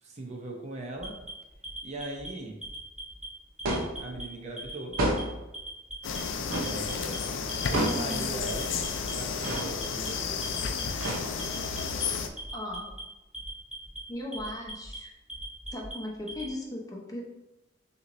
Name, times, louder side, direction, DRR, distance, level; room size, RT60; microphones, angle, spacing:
voice 1, 0.0-1.2 1.8-2.6 4.0-5.0 6.6-7.3 7.7-8.7 9.0-10.6, right 1 dB, 35° right, 0 dB, 0.7 m, -39 dB
Alarm, 1.0-2.3 2.6-3.3 3.6-4.2 4.6-5.2 5.5-6.2 6.5-7.2 7.5-8.1 8.5-9.1 9.4-10.1 10.4-11.1 11.4-12.0 12.4-13.0 13.3-14.0 14.3-15.0 15.3-16.5, right 1 dB, 5° right, 1.0 m, -41 dB
sound 1, 3.7-4.0 5.0-5.5 6.5-6.8 7.7-8.1 9.4-9.8 11.0-11.6, right 1 dB, 80° right, 0.7 m, -30 dB
sound 2, 6.0-12.3, left 5 dB, 70° left, 0.4 m, -32 dB
voice 2, 7.9-8.4 12.5-13.0 14.1-15.1 15.7-17.2, left 1 dB, 20° left, -2 dB, 0.7 m, -37 dB
6.0 x 2.9 x 2.6 m, 1.0 s
head